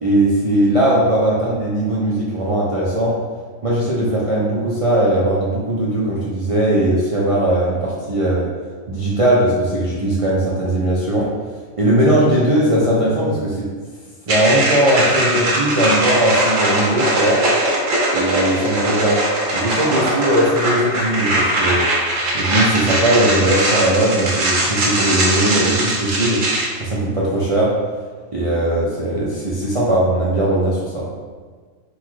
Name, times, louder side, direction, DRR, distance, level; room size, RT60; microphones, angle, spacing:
voice 1, 0.0-1.3 1.7-3.2 3.6-8.5 8.9-11.3 11.8-13.7 14.3-17.4 18.1-19.2 19.5-21.9 22.3-26.4 26.8-27.7 28.3-31.1, right 1 dB, 45° right, -7 dB, 0.5 m, -18 dB
sound 1, 14.3-26.7, right 1 dB, 85° right, 1.2 m, -20 dB
3.9 x 2.3 x 4.6 m, 1.5 s
omnidirectional pair, 1.3 m